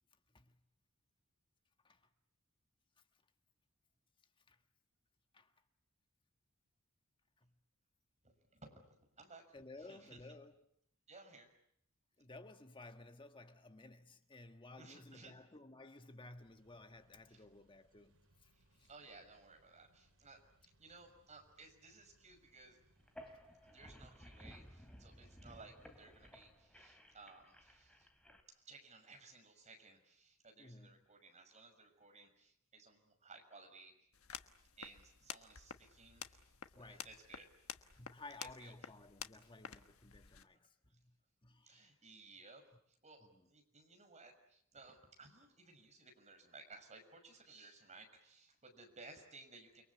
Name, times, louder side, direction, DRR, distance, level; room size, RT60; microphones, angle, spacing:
voice 1, 8.2-9.4 9.9-10.2 11.1-11.5 14.8-15.4 17.3-17.4 18.5-22.8 23.6-28.1 28.5-33.9 34.8-36.4 36.8-37.5 38.4-38.9 41.6-42.6 43.0-49.8, right 3 dB, 35° right, 6.3 m, -59 dB
voice 2, 9.5-10.6 12.2-18.1 18.4-18.9 23.2-23.3 30.6-31.0 36.7-37.1 38.0-41.2 41.4-41.9 43.3-43.4, left 2 dB, 25° left, 1.5 m, -56 dB
sound 1, 16.2-27.0, right 1 dB, 75° right, 7.5 m, -74 dB
sound 2, 23.0-28.4, equal, 5° left, 2.8 m, -58 dB
sound 3, 34.1-40.4, left 8 dB, 75° left, 1.4 m, -52 dB
29.5 x 23.0 x 8.4 m
head